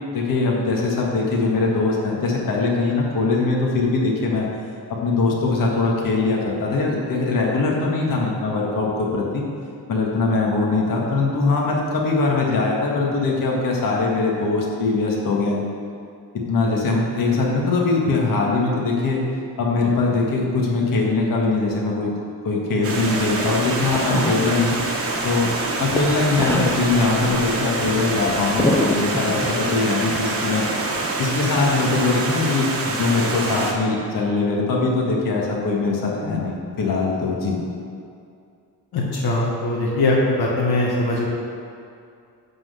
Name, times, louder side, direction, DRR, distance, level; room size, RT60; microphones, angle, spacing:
voice 1, 0.1-4.5 5.0-9.4 9.9-15.6 16.5-19.2 19.6-22.1 22.4-24.8 25.2-25.5 25.8-30.7 31.2-37.6, left 3 dB, 55° left, -2 dB, 1.8 m, -21 dB
Stream, 22.8-33.7, right 3 dB, 35° right, 1.3 m, -26 dB
sound 1, 23.1-25.3 25.6-29.7 30.1-31.1, left 1 dB, 5° left, 0.6 m, -28 dB
voice 2, 38.9-41.3, left 2 dB, 70° left, -4 dB, 1.7 m, -21 dB
11.0 x 4.2 x 7.7 m, 2.4 s
cardioid pair, 150°, 40 cm